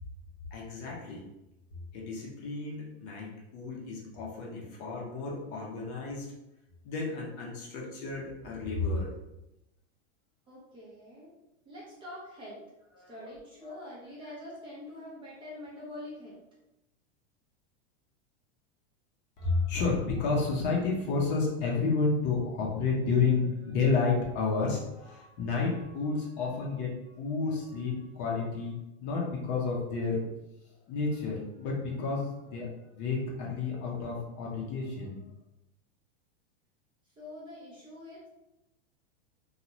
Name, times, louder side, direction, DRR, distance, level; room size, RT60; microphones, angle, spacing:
voice 1, 0.5-1.2 1.9-6.3 6.8-9.1 13.0-13.1 19.4-26.9 27.2-30.2 30.9-32.7 32.9-35.2, left 4 dB, 35° left, -2 dB, 0.6 m, -31 dB
voice 2, 10.5-12.6 13.1-16.4 26.7-26.8 37.2-38.3, left 1 dB, 15° right, -6 dB, 0.5 m, -45 dB
2.6 x 2.3 x 3.0 m, 0.92 s
supercardioid pair, 155°, 32 cm